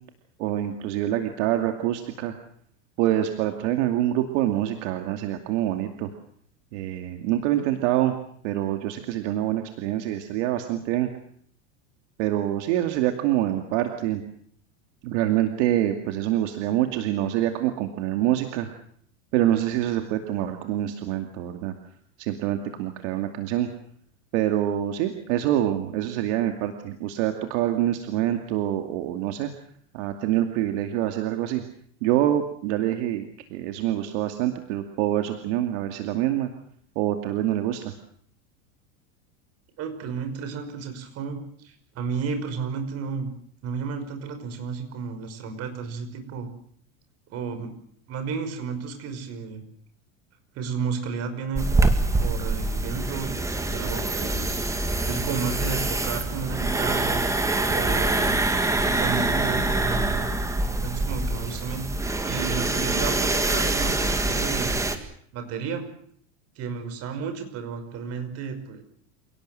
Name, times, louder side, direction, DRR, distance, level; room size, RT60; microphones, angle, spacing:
voice 1, 0.4-2.3 3.0-6.1 6.7-8.1 8.4-11.1 12.2-14.2 15.0-18.7 19.3-21.7 22.2-23.7 24.3-29.5 29.9-31.6 32.0-36.5 37.0-37.9, right 12 dB, 70° right, 6 dB, 2.5 m, -25 dB
voice 2, 39.8-43.3 43.6-46.5 47.3-47.7 48.1-49.6 50.5-51.7 52.2-53.4 53.7-54.6 55.0-57.3 57.7-58.4 58.8-60.3 60.8-61.9 62.2-64.8 65.3-65.9 66.6-68.8, right 5 dB, 40° right, 8 dB, 5.5 m, -32 dB
sound 1, 51.6-65.0, right 2 dB, 10° right, 2.0 m, -25 dB
28.0 x 18.0 x 7.8 m, 0.62 s
supercardioid pair, 150°, 37 cm